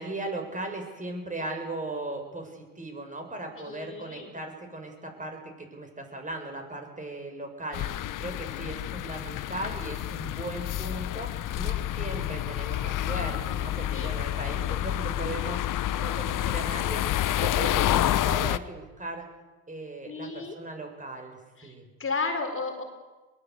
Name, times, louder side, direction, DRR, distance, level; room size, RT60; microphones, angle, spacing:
voice 1, 0.0-7.9 8.2-15.6 15.9-17.0 17.4-19.3 19.7-21.9, right 2 dB, 20° right, 4 dB, 7.1 m, -37 dB
voice 2, 3.6-4.3 12.7-12.9 13.2-13.3 13.8-14.6 20.1-20.6 21.6-21.7 22.0-22.8, left 4 dB, 30° left, 4 dB, 4.3 m, -34 dB
sound 1, 7.7-18.6, left 13 dB, 45° left, 1.1 m, -29 dB
22.0 x 19.5 x 8.1 m, 1.2 s
hypercardioid pair, 75°, 42 cm